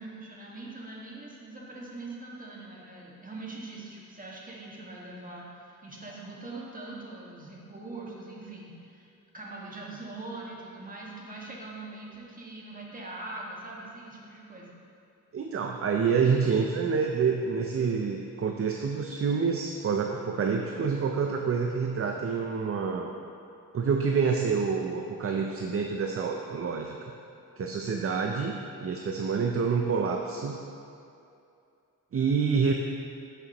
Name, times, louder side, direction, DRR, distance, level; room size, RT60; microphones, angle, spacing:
voice 1, 0.0-9.1 9.3-14.7, right 2 dB, 25° right, -4 dB, 1.6 m, -42 dB
voice 2, 15.3-23.1 23.7-27.0 27.6-30.6 32.1-32.7, right 5 dB, 40° right, 2 dB, 0.5 m, -27 dB
11.0 x 6.6 x 3.0 m, 2.6 s
wide cardioid pair, 100°, 35 cm